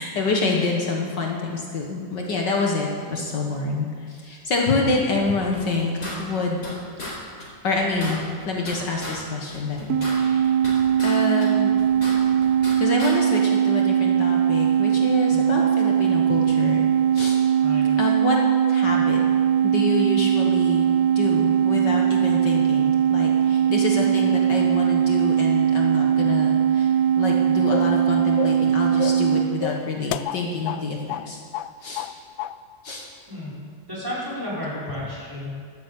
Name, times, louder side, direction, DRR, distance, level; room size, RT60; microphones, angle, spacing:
voice 1, 0.0-6.6 7.6-8.2 8.5-10.5 11.0-11.7 12.8-16.8 17.1-17.4 18.0-18.4 18.7-19.2 19.6-20.9 21.2-31.4 31.8-32.1 32.8-33.1, left 3 dB, 65° left, 0 dB, 2.0 m, -27 dB
sound 1, 5.5-6.7 7.0-7.1 7.4-7.5 7.8-9.2 9.5-11.1 11.4-12.7 13.0-13.1, left 1 dB, 40° left, 4.7 m, -35 dB
sound 2, 9.9-29.5, right 9 dB, 65° right, 1.0 m, -20 dB
sound 3, 27.7-28.0 28.4-28.7 29.0-29.3 29.6-30.8 31.1-31.3 31.5-32.1 32.4-32.6, left 13 dB, 80° left, 1.3 m, -30 dB
voice 2, 33.9-35.6, left 1 dB, 10° right, -8 dB, 5.4 m, -32 dB
12.5 x 12.0 x 8.5 m, 2.1 s
omnidirectional pair, 2.2 m